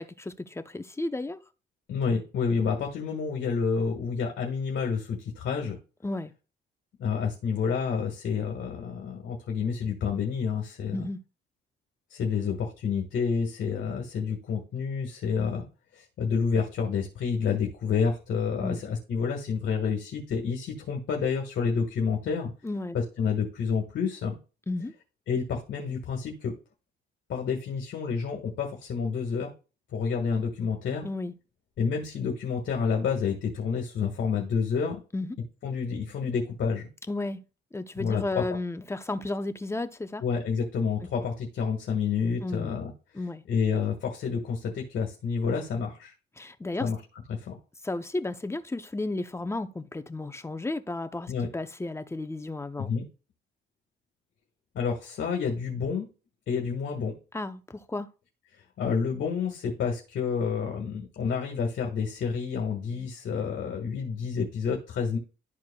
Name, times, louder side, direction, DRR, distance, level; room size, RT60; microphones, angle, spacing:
voice 1, 0.0-1.4 6.0-6.3 10.9-11.2 18.6-18.8 22.6-23.0 24.7-24.9 31.0-31.3 35.1-35.3 37.1-37.4 37.7-40.2 42.4-42.7 43.1-43.4 46.4-46.8 47.8-52.9 57.3-58.1, left 2 dB, 15° left, 0.6 m, -33 dB
voice 2, 1.9-5.8 7.0-11.1 12.1-15.7 15.9-22.5 22.9-24.4 25.3-26.5 27.3-29.5 29.9-31.0 31.8-35.0 35.6-36.9 38.0-38.4 40.2-42.9 43.5-46.1 46.8-47.0 47.3-47.6 51.3-51.5 52.8-53.0 54.7-56.1 56.5-57.2 58.5-65.2, left 6 dB, 70° left, 1.7 m, -29 dB
12.0 x 4.6 x 2.3 m
cardioid pair, 90°, 20 cm